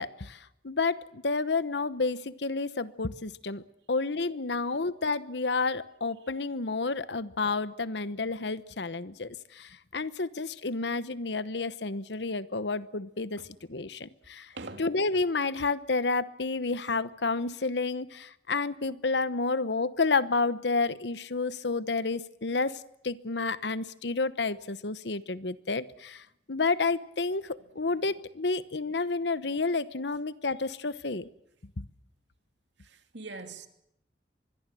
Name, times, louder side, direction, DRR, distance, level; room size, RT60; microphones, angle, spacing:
voice 1, 0.0-13.4 13.7-14.5 14.8-31.3 31.8-31.9, left 3 dB, 75° left, 1.0 m, -30 dB
voice 2, 14.5-14.9 32.8-33.7, right 3 dB, 85° right, 2.8 m, -42 dB
24.5 x 22.0 x 7.6 m
head